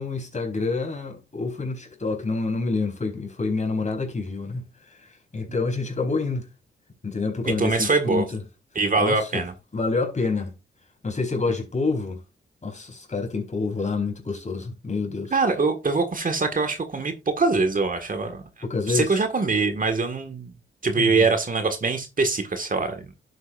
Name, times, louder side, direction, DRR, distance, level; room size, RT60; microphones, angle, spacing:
voice 1, 0.0-6.5 7.0-8.4 9.0-9.4 9.7-10.5 11.0-12.2 12.6-15.3 18.6-19.2 21.0-21.3, left 3 dB, 35° left, 4.4 m, -28 dB
voice 2, 7.5-8.3 8.8-9.5 15.3-18.4 18.9-20.5 20.8-23.1, right 3 dB, 40° right, 1.7 m, -23 dB
11.5 x 7.9 x 2.5 m
cardioid pair, 70°, 21 cm